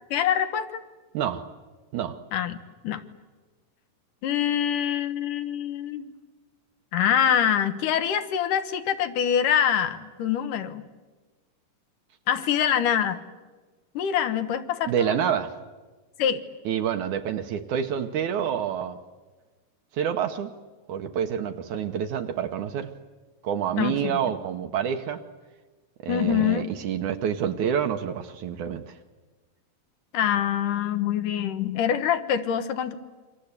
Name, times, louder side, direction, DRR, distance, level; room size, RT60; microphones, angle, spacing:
voice 1, 0.1-0.8 2.3-2.6 2.8-3.0 4.2-6.1 6.9-10.8 12.3-13.2 13.9-15.3 16.2-16.4 23.8-24.2 26.1-26.7 30.1-32.9, left 9 dB, 70° left, 10 dB, 2.8 m, -25 dB
voice 2, 1.1-1.5 1.9-2.2 14.9-15.6 16.7-19.0 19.9-20.5 20.9-22.9 23.4-25.2 26.0-29.0, right 8 dB, 70° right, 6 dB, 2.3 m, -28 dB
27.5 x 25.5 x 8.4 m, 1.3 s
omnidirectional pair, 4.0 m